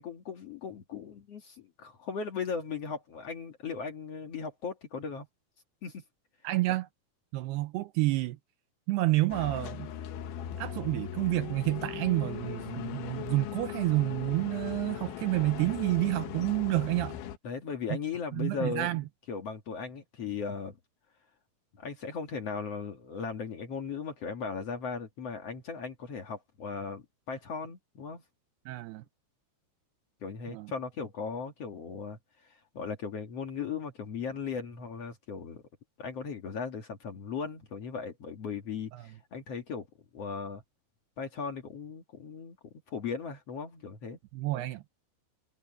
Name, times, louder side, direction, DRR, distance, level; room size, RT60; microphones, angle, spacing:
voice 1, 0.0-5.3 5.8-6.0 10.2-10.4 17.4-19.0 19.3-20.8 21.8-28.2 30.2-32.2 32.4-35.6 36.0-39.9 40.1-40.6 41.2-44.2, left 5 dB, 55° left, 1.8 m, -37 dB
voice 2, 6.4-6.9 7.3-8.4 8.9-9.9 10.6-17.2 18.3-19.0 28.7-29.0 30.5-30.7 38.9-39.1 44.3-44.8, right 18 dB, 85° right, 2.4 m, -29 dB
sound 1, 9.3-17.4, left 11 dB, 90° left, 3.9 m, -39 dB
omnidirectional pair, 5.3 m